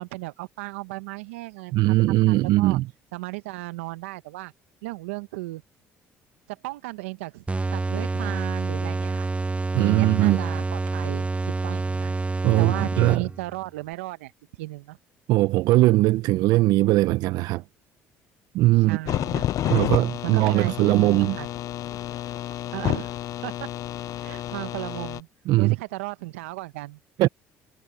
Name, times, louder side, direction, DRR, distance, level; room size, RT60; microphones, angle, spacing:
voice 1, 0.0-1.9 2.3-2.8 3.1-4.5 4.8-5.6 6.5-9.3 9.7-14.3 14.6-15.0 18.7-19.9 20.2-21.5 22.7-23.2 23.4-23.7 24.2-25.3 25.6-27.0, right 21 dB, 85° right, 1.2 m, -35 dB
voice 2, 1.7-2.8 9.7-10.4 12.4-13.3 15.3-17.6 18.5-19.0 19.7-21.4 25.5-25.8 27.2-27.3, right 18 dB, 70° right, 0.8 m, -20 dB
sound 1, 7.5-13.6, right 3 dB, 20° right, 0.9 m, -27 dB
sound 2, 19.0-25.2, left 13 dB, 55° left, 0.4 m, -30 dB
hypercardioid pair, 60°, 7 cm